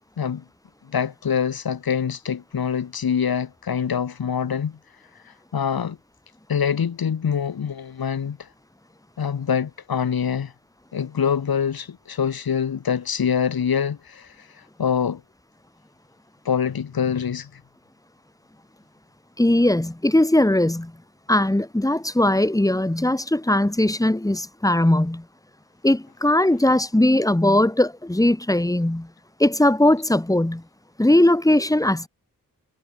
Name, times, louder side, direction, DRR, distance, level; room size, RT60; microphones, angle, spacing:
voice 1, 0.9-4.8 5.2-6.0 6.5-8.5 9.2-10.5 10.9-15.2 16.4-17.6, left 7 dB, 85° left, 8.0 m, -25 dB
voice 2, 19.4-20.9 21.3-25.2 25.8-29.1 29.4-30.6 31.0-32.1, left 1 dB, 10° left, 6.5 m, -19 dB
wide cardioid pair, 130°, 35 cm